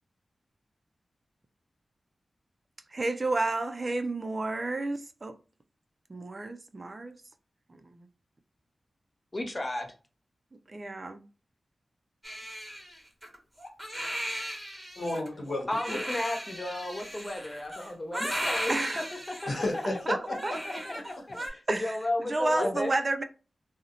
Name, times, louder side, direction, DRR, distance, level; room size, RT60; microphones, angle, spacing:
voice 1, 2.9-5.4 6.1-7.1 7.8-8.1 10.7-11.2 18.7-19.1 20.1-20.6 21.7-23.2, right 2 dB, 40° right, 0.3 m, -31 dB
voice 2, 9.3-9.9 15.7-19.3 20.3-22.9, left 1 dB, 30° left, 0.6 m, -34 dB
Crying sobbing, 12.2-21.5, equal, 15° right, 1.0 m, -37 dB
voice 3, 15.0-16.0 19.5-19.9 20.7-20.8 21.3-21.4 22.5-22.7, left 2 dB, 60° left, 1.0 m, -32 dB
2.5 x 2.0 x 2.8 m
wide cardioid pair, 70°, 0 cm